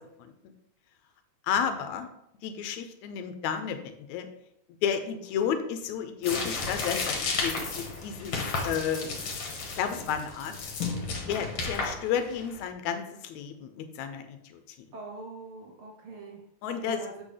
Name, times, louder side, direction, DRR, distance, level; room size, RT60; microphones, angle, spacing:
voice 1, 1.5-2.1 2.4-4.3 4.8-8.4 8.6-9.1 9.7-10.5 11.3-14.6 16.6-17.0, left 8 dB, 80° left, 8 dB, 2.0 m, -31 dB
sound 1, 6.2-12.6, left 4 dB, 60° left, 2.2 m, -33 dB
voice 2, 14.9-17.2, right 3 dB, 75° right, 1 dB, 1.3 m, -44 dB
7.6 x 6.4 x 3.3 m, 0.77 s
omnidirectional pair, 3.4 m